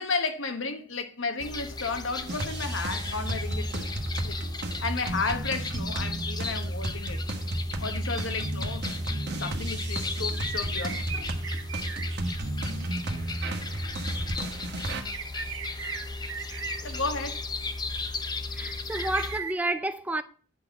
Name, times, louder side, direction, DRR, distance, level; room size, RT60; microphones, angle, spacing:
voice 1, 0.0-3.9 4.2-4.4 4.8-7.2 7.8-8.9 9.3-11.3 16.8-17.4, left 4 dB, 75° left, 1.3 m, -33 dB
sound 1, 1.4-19.4, left 3 dB, 20° left, 0.8 m, -37 dB
sound 2, 2.3-15.0, right 1 dB, 55° right, 1.5 m, -32 dB
sound 3, 10.3-12.9 14.9-17.2 18.9-19.5, right 7 dB, 85° right, 1.2 m, -38 dB
voice 2, 18.5-20.2, right 2 dB, 10° right, 0.5 m, -30 dB
9.8 x 4.3 x 7.0 m
head